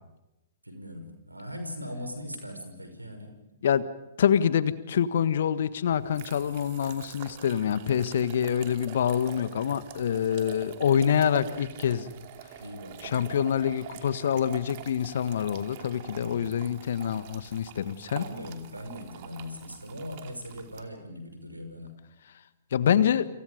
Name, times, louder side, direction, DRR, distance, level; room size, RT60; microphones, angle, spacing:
voice 1, 0.6-3.3 12.6-13.3 16.0-16.5 18.1-22.0, left 1 dB, 90° right, 6 dB, 6.1 m, -40 dB
voice 2, 4.2-12.1 13.0-18.2 22.7-23.3, left 8 dB, 55° left, 14 dB, 1.5 m, -26 dB
sound 1, 5.9-20.8, right 10 dB, 45° right, 2.7 m, -45 dB
29.5 x 27.5 x 5.3 m, 0.94 s
figure-of-eight pair, 115°, 0 cm